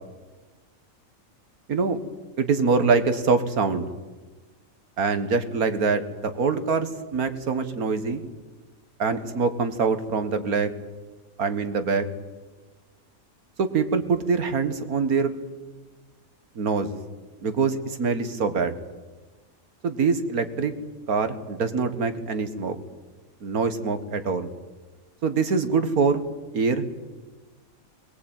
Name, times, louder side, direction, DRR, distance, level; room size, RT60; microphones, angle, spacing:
voice 1, 2.4-3.9 5.0-8.2 9.0-10.7 11.4-12.1 13.6-15.3 16.6-16.9 17.4-18.7 19.8-20.7 21.1-22.8 23.4-24.5 25.2-26.2 26.5-26.8, right 4 dB, 85° right, 10 dB, 2.1 m, -24 dB
21.5 x 20.5 x 9.1 m, 1.3 s
omnidirectional pair, 1.5 m